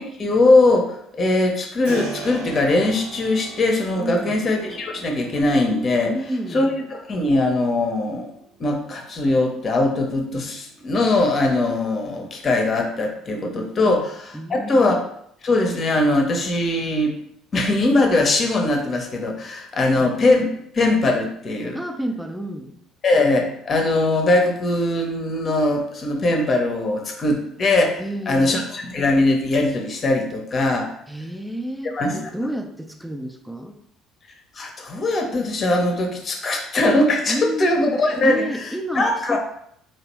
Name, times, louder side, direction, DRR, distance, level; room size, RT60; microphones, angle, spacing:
voice 1, 0.0-6.1 6.5-8.3 8.6-14.2 14.5-15.0 15.4-17.1 17.5-20.5 20.7-21.8 23.0-28.0 28.3-30.9 31.9-32.2 34.5-38.4 38.9-39.4, left 2 dB, 35° left, 3 dB, 0.9 m, -20 dB
Keyboard (musical), 1.8-12.5, right 4 dB, 70° right, 0.9 m, -41 dB
voice 2, 4.0-4.4 6.1-6.7 13.8-14.0 14.3-14.9 21.7-22.8 28.0-28.6 31.1-33.8 37.3-38.0 38.2-39.4, right 1 dB, ahead, 4 dB, 0.6 m, -30 dB
4.6 x 2.9 x 3.1 m, 0.70 s
figure-of-eight pair, 55°, 0 cm